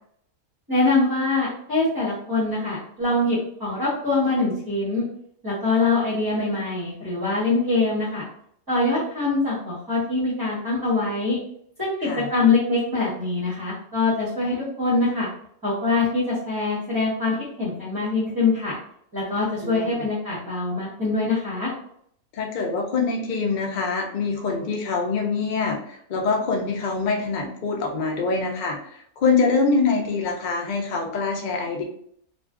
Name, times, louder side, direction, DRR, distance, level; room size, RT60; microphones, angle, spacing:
voice 1, 0.7-5.0 5.4-8.2 8.7-11.4 11.8-15.3 15.6-18.7 19.1-21.7, left 3 dB, 20° right, -8 dB, 0.7 m, -23 dB
voice 2, 19.6-20.0 22.3-31.8, left 4 dB, 80° left, 1 dB, 0.4 m, -25 dB
2.5 x 2.3 x 2.4 m, 0.66 s
omnidirectional pair, 1.5 m